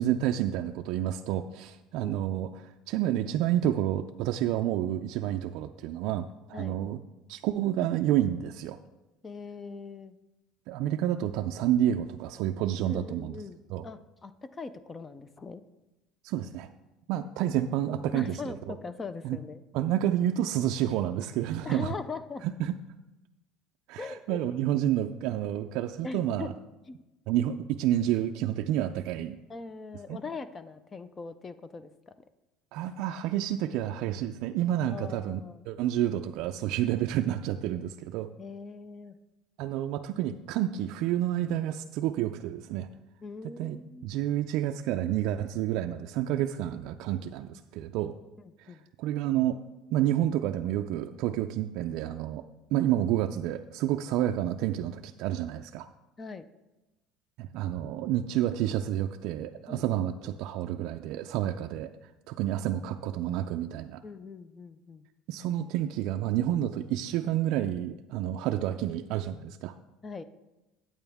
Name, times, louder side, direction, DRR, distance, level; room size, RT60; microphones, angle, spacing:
voice 1, 0.0-7.0 7.3-8.8 10.7-13.4 13.7-13.9 16.2-16.7 17.1-18.7 19.2-19.4 19.7-21.9 22.4-22.8 23.9-26.5 27.3-29.4 30.1-30.2 32.7-35.4 35.7-38.3 39.6-42.9 43.4-43.8 44.0-48.1 48.6-49.6 49.9-52.5 52.7-55.9 57.4-64.0 65.3-69.7, right 12 dB, 65° right, 5 dB, 0.3 m, -29 dB
voice 2, 2.0-2.5 6.5-6.8 9.2-10.2 12.9-15.6 18.1-19.6 21.7-22.4 24.0-24.4 26.0-26.5 26.9-27.0 29.5-32.1 34.9-35.7 38.4-39.2 43.2-44.1 48.7-48.8 56.2-56.5 59.7-60.0 64.0-65.0 70.0-70.2, left 4 dB, 20° left, 13 dB, 0.4 m, -41 dB
9.0 x 8.7 x 3.5 m, 1.0 s
cardioid pair, 140°, 0 cm